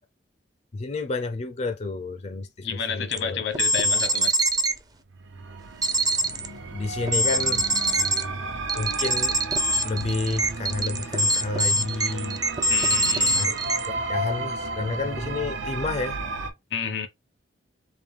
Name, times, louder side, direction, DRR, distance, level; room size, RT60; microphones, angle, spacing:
voice 1, 0.7-3.4 3.8-4.1 6.2-8.2 8.4-9.3 9.8-12.4 13.3-13.5 13.9-16.2, left 3 dB, 35° left, 0.4 m, -31 dB
voice 2, 2.6-4.4 12.7-13.5 16.7-17.1, left 6 dB, 85° left, 1.0 m, -30 dB
sound 1, 3.1-3.2 3.5-4.8 5.8-6.5 7.1-8.2 8.7-13.9, right 1 dB, 20° right, 0.5 m, -24 dB
sound 2, 5.1-16.5, right 2 dB, 85° right, 0.8 m, -34 dB
3.6 x 2.6 x 3.3 m
head